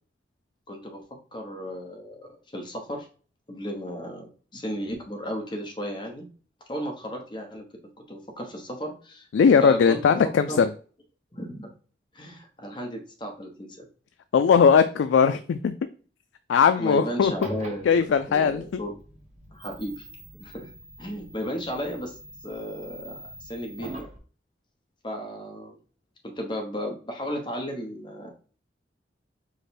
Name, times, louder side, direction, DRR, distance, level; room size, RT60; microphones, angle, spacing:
voice 1, 0.7-1.0 1.3-3.1 3.5-6.3 6.7-7.6 8.1-9.3 9.6-10.2 10.5-10.7 11.3-11.7 12.1-13.9 16.8-19.0 19.5-20.1 20.3-20.7 21.0-24.1 25.0-25.8 26.4-28.3, equal, 25° left, 2 dB, 1.0 m, -34 dB
voice 2, 9.3-10.7 14.3-15.7 16.5-17.3 17.9-18.6, left 6 dB, 90° left, 9 dB, 0.3 m, -19 dB
sound 1, 17.2-24.2, right 1 dB, 35° right, 1.0 m, -44 dB
4.9 x 2.2 x 4.2 m, 0.39 s
head